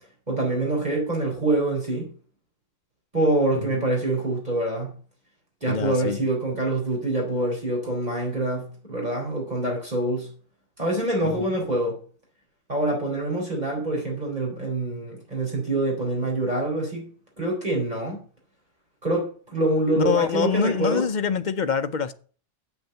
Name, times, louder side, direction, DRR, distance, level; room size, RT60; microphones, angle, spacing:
voice 1, 0.3-2.1 3.1-4.9 5.6-10.3 10.8-12.0 12.7-17.1 17.4-18.2 19.0-21.1, right 1 dB, 30° right, 4.3 m, -25 dB
voice 2, 5.7-6.2 11.3-11.4 20.0-22.1, left 6 dB, 50° left, 0.6 m, -25 dB
7.9 x 7.2 x 8.0 m
omnidirectional pair, 1.3 m